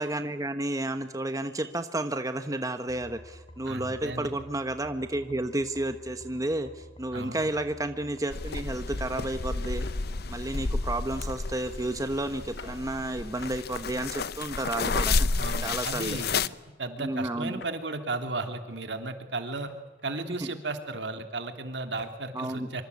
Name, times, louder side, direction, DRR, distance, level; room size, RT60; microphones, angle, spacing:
voice 1, 0.0-9.9 10.3-15.3 15.6-16.2 17.0-17.6 22.3-22.7, right 1 dB, 20° right, 8 dB, 1.1 m, -31 dB
sound 1, 2.9-12.6, equal, 30° left, 3.3 m, -50 dB
voice 2, 3.7-4.3 7.1-7.5 15.4-19.7 20.0-22.8, right 2 dB, 70° right, 6 dB, 3.2 m, -35 dB
sound 2, 8.3-16.5, left 4 dB, 60° left, 0.8 m, -31 dB
sound 3, 9.8-10.3 12.5-13.3 13.9-14.1 15.3-15.7 17.6-17.8 19.5-20.1 21.8-22.2, left 3 dB, 90° left, 4.4 m, -51 dB
25.5 x 25.5 x 8.4 m, 1.2 s
head